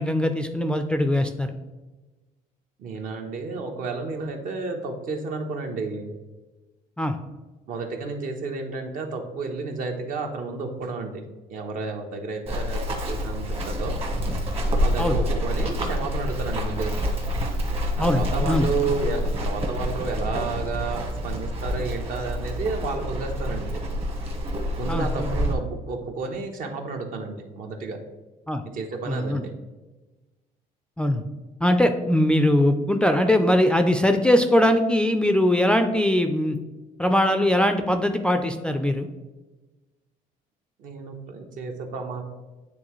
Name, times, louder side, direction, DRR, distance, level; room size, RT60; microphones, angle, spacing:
voice 1, 0.0-1.5 7.0-7.2 15.0-15.2 18.0-18.7 24.9-25.4 28.5-28.6 29.1-29.4 31.0-31.2 31.6-36.6 37.0-39.1, left 1 dB, 5° left, 7 dB, 0.4 m, -21 dB
voice 2, 2.8-6.1 7.7-11.2 11.5-14.0 14.8-17.0 18.0-23.8 24.8-28.0 28.6-29.5 40.8-42.2, right 4 dB, 60° right, 4 dB, 1.0 m, -31 dB
Run, 12.5-25.5, equal, 40° right, 1.3 m, -27 dB
8.8 x 3.6 x 3.1 m, 1.2 s
cardioid pair, 115°, 16 cm